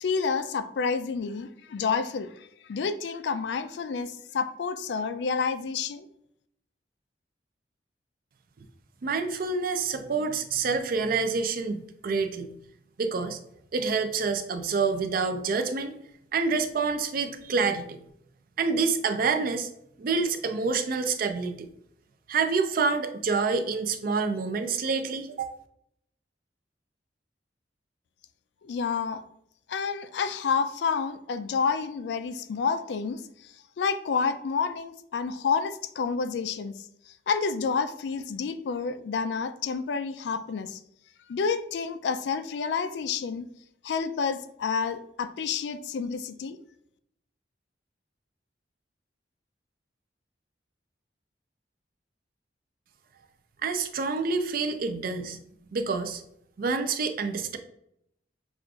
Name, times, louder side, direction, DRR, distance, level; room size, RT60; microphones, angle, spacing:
voice 1, 0.0-2.3 2.7-6.1 28.6-29.2 29.7-33.2 33.8-36.7 37.3-40.8 41.3-43.5 43.8-46.6, left 5 dB, 70° left, 11 dB, 0.3 m, -29 dB
voice 2, 9.0-12.5 13.0-13.4 13.7-15.9 16.3-17.9 18.6-19.7 20.0-21.7 22.3-25.5 53.6-55.4 55.7-56.2 56.6-57.6, right 4 dB, 55° right, 8 dB, 0.4 m, -27 dB
6.2 x 2.4 x 2.3 m, 0.75 s
head